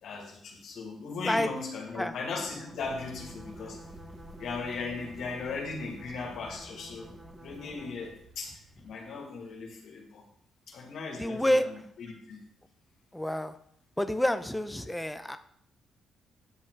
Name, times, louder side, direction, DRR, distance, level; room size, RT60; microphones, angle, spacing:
voice 1, 0.0-3.8 4.4-7.1 7.4-10.2 10.7-12.4, left 4 dB, 70° left, -1 dB, 2.2 m, -38 dB
sound 1, 2.5-8.2, right 1 dB, 10° right, 1.4 m, -50 dB
sound 2, 2.8-8.9, right 1 dB, 45° right, 2.6 m, -53 dB
voice 2, 11.2-11.7 13.1-13.5 14.0-15.4, left 1 dB, 5° left, 9 dB, 0.8 m, -28 dB
9.5 x 6.0 x 4.7 m, 0.67 s
cardioid pair, 90°, 0 cm